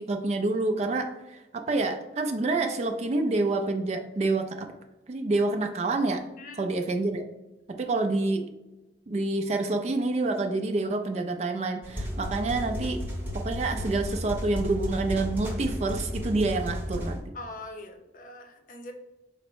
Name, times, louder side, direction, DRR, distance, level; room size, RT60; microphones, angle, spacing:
voice 1, 0.0-4.7 5.1-6.2 6.6-7.3 7.8-8.4 9.1-13.0 13.3-17.3, right 2 dB, 40° right, 5 dB, 0.4 m, -27 dB
voice 2, 6.4-6.7 17.3-18.9, left 2 dB, 50° left, 5 dB, 0.6 m, -42 dB
sound 1, 11.8-17.2, equal, 10° right, 0.8 m, -33 dB
5.0 x 2.1 x 4.5 m, 1.0 s
head